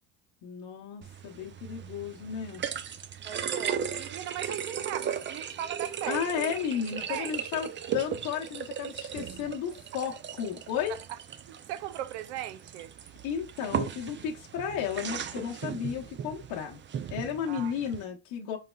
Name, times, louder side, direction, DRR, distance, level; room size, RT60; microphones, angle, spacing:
voice 1, 0.4-2.6 6.1-11.0 13.2-16.8 17.1-18.6, left 8 dB, 65° left, 0.8 m, -33 dB
sound 1, 1.0-18.0, right 8 dB, 35° right, 0.5 m, -37 dB
voice 2, 3.2-6.2 7.1-7.4 11.7-12.9 17.5-17.7, right 12 dB, 85° right, 0.5 m, -38 dB
4.1 x 3.1 x 2.2 m
supercardioid pair, 80°, 35 cm